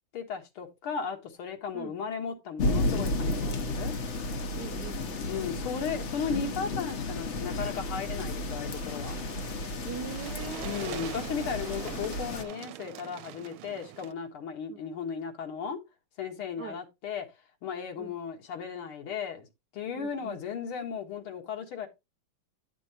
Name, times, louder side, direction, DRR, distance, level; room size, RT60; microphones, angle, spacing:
voice 1, 0.1-3.9 5.3-9.2 10.6-15.8 16.2-17.3 17.6-19.5 19.7-21.9, left 6 dB, 75° left, 2.3 m, -35 dB
sound 1, 2.6-12.4, left 2 dB, 55° left, 0.8 m, -33 dB
voice 2, 4.5-5.3 9.8-10.8 11.1-11.3 14.7-14.8 16.6-16.8 18.0-18.2 19.9-20.4, right 6 dB, 60° right, 1.3 m, -42 dB
sound 2, 8.5-14.1, right 14 dB, 80° right, 1.4 m, -44 dB
10.0 x 6.2 x 2.9 m
omnidirectional pair, 2.4 m